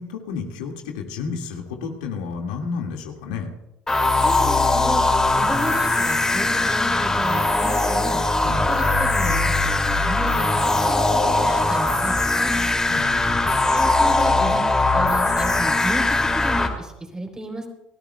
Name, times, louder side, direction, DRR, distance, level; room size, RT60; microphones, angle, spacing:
voice 1, 0.0-3.5 8.4-8.7 12.9-13.5, left 5 dB, 80° left, 2 dB, 2.0 m, -31 dB
sound 1, 3.9-16.7, left 2 dB, 15° left, 2.6 m, -20 dB
voice 2, 4.2-8.2 8.7-12.5 13.7-14.6 14.9-17.7, right 1 dB, 15° right, 4 dB, 3.5 m, -33 dB
29.0 x 13.0 x 2.3 m, 0.93 s
hypercardioid pair, 75°, 4 cm